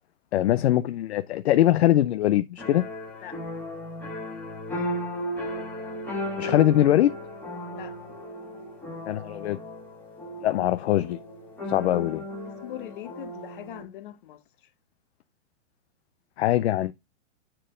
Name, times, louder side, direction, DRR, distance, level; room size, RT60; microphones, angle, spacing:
voice 1, 0.3-2.8 6.4-7.1 9.1-9.6 10.4-11.2 11.7-12.2 16.4-16.9, left 13 dB, 60° left, 0.5 m, -22 dB
sound 1, 2.6-13.8, equal, 5° left, 1.6 m, -36 dB
voice 2, 12.4-14.7, left 12 dB, 45° left, 1.0 m, -41 dB
7.4 x 4.5 x 3.7 m
hypercardioid pair, 165°, 37 cm